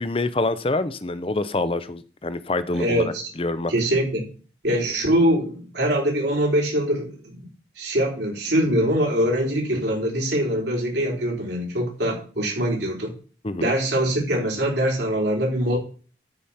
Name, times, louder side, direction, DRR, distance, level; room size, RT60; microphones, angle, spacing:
voice 1, 0.0-3.0 3.4-3.7 9.7-9.8 13.4-13.7, left 2 dB, 30° left, 13 dB, 0.7 m, -26 dB
voice 2, 2.7-3.2 3.7-4.3 4.6-7.4 7.8-13.1 13.6-15.8, equal, 75° right, 0 dB, 3.9 m, -23 dB
12.5 x 5.0 x 5.8 m, 0.39 s
head